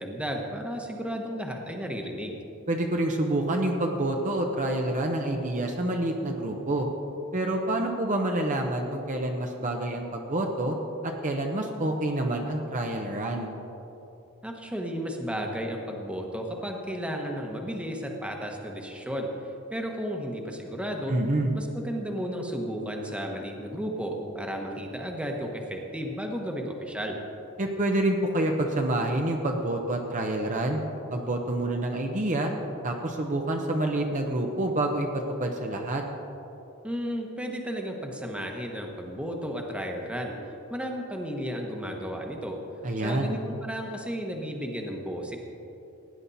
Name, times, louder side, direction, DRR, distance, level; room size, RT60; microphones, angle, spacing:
voice 1, 0.0-2.4 14.4-19.3 19.7-21.2 21.5-27.2 36.8-40.3 40.7-42.6 43.0-45.4, equal, 5° right, 1 dB, 1.2 m, -33 dB
voice 2, 2.7-6.9 7.3-10.8 11.0-13.5 21.1-21.5 27.6-30.8 31.1-32.5 32.8-36.0 42.8-43.3, right 1 dB, 35° right, 2 dB, 0.9 m, -27 dB
17.0 x 9.9 x 4.1 m, 2.9 s
head